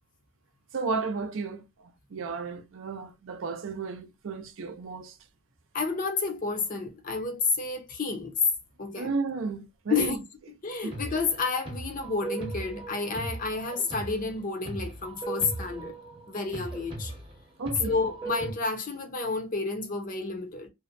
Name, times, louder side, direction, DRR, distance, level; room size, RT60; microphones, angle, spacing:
voice 1, 0.7-5.2 9.0-10.2 10.8-11.0 17.6-17.9, right 4 dB, 60° right, 0.4 m, -33 dB
voice 2, 5.7-8.3 8.8-9.1 9.9-10.2 10.6-16.0 16.3-17.1 17.8-20.7, left 4 dB, 35° left, 0.6 m, -30 dB
sound 1, 10.9-18.5, right 2 dB, 25° right, 0.8 m, -38 dB
2.6 x 2.1 x 2.5 m
head